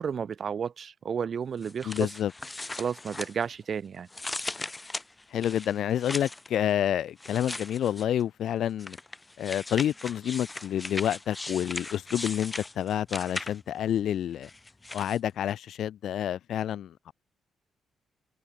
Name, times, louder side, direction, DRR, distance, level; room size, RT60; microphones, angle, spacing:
voice 1, 0.0-2.1 2.8-4.1, right 7 dB, 50° right, 0.8 m, -32 dB
sound 1, 1.6-3.7 4.1-6.5 7.2-8.2 8.8-13.8 14.4-15.2, left 2 dB, 15° left, 2.1 m, -38 dB
voice 2, 1.8-2.3 5.3-9.0 9.4-14.5 14.9-17.1, left 10 dB, 70° left, 0.4 m, -29 dB
cardioid pair, 90°, 0 cm